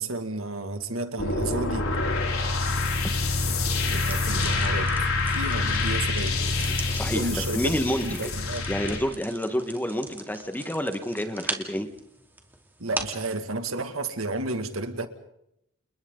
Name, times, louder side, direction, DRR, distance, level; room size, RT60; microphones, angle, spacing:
voice 1, 0.0-1.9 3.9-6.4 7.1-7.7 8.0-8.7 12.8-15.1, right 2 dB, 85° right, 7 dB, 2.3 m, -32 dB
sound 1, 1.2-9.0, left 3 dB, 90° left, 5.9 m, -26 dB
sound 2, 3.9-13.3, right 2 dB, 10° right, 2.6 m, -40 dB
voice 2, 6.9-8.3 8.7-11.9, equal, 10° left, 8 dB, 1.6 m, -29 dB
30.0 x 29.5 x 4.0 m, 0.79 s
head